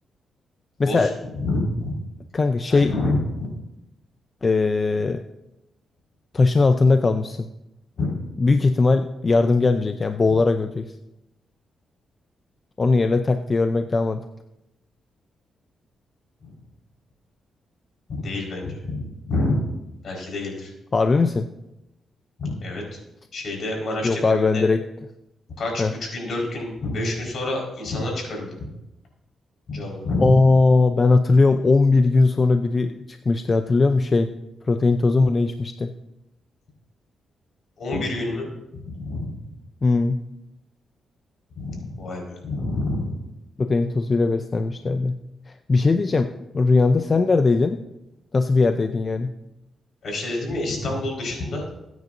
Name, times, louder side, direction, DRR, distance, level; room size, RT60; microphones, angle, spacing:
voice 1, 0.8-1.1 2.3-2.9 4.4-5.2 6.3-7.5 8.4-10.9 12.8-14.2 20.9-21.5 24.0-24.8 25.8-25.9 30.2-34.3 34.7-35.9 39.8-40.2 43.6-45.2 45.7-47.8 48.3-49.3, left 3 dB, 35° left, 7 dB, 0.6 m, -19 dB
voice 2, 1.4-2.0 2.7-3.5 8.0-8.2 16.4-16.5 18.1-19.7 20.0-20.7 22.4-22.8 23.3-24.6 25.6-28.7 29.7-30.4 37.8-39.4 41.5-43.2 50.0-51.6, left 2 dB, 60° left, 0 dB, 4.6 m, -28 dB
20.5 x 9.4 x 2.6 m, 0.91 s
cardioid pair, 80°, 0 cm